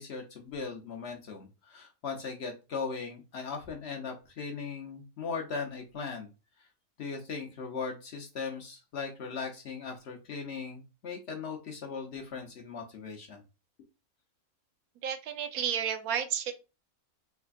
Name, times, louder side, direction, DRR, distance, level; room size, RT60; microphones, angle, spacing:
voice 1, 0.0-6.3 6.6-6.7 7.0-13.4, left 5 dB, 55° left, 2 dB, 0.8 m, -38 dB
voice 2, 15.0-16.5, right 8 dB, 75° right, 8 dB, 1.1 m, -31 dB
3.5 x 3.3 x 2.3 m, 0.29 s
omnidirectional pair, 1.6 m